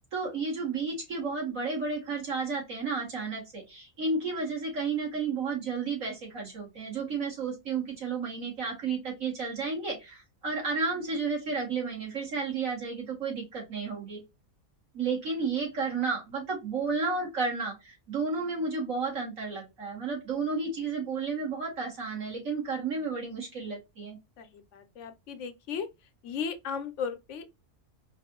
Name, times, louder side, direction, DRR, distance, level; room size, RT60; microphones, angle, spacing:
voice 1, 0.1-14.2 14.9-24.2, right 4 dB, 90° right, 2.5 m, -32 dB
voice 2, 24.7-25.9 26.2-27.5, left 6 dB, 70° left, 1.0 m, -35 dB
4.7 x 2.6 x 2.8 m
omnidirectional pair, 1.3 m